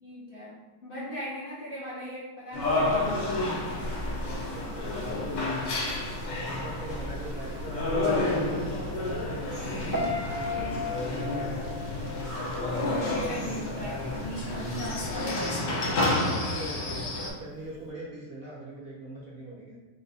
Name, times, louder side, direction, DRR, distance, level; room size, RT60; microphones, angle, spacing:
voice 1, 0.0-3.8 10.5-11.1 12.6-16.0, equal, 50° left, -7 dB, 0.6 m, -39 dB
sound 1, 2.5-17.3, left 2 dB, 65° left, 1.5 m, -30 dB
sound 2, 2.6-15.3, left 1 dB, 80° right, 1.5 m, -41 dB
voice 2, 3.8-5.8 6.3-8.9 9.6-11.7 14.2-14.5 16.0-19.8, right 2 dB, 35° right, -6 dB, 1.1 m, -43 dB
Piano, 9.9-13.0 13.3-13.7, left 3 dB, 20° right, 0.6 m, -34 dB
4.1 x 2.6 x 4.0 m, 1.2 s
omnidirectional pair, 2.2 m